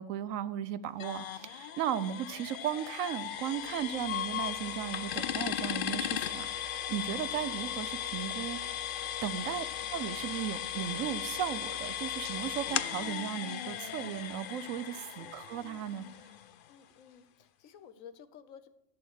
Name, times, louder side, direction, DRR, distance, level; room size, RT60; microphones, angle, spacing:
voice 1, 0.0-8.6 9.2-9.6 9.9-16.1, right 10 dB, 85° right, 15 dB, 1.0 m, -36 dB
sound 1, 1.0-16.7, left 10 dB, 65° left, 0.5 m, -37 dB
voice 2, 9.4-9.7 15.2-15.3 16.7-18.7, left 8 dB, 90° left, 12 dB, 1.2 m, -53 dB
11.5 x 6.4 x 6.3 m, 0.86 s
omnidirectional pair, 1.3 m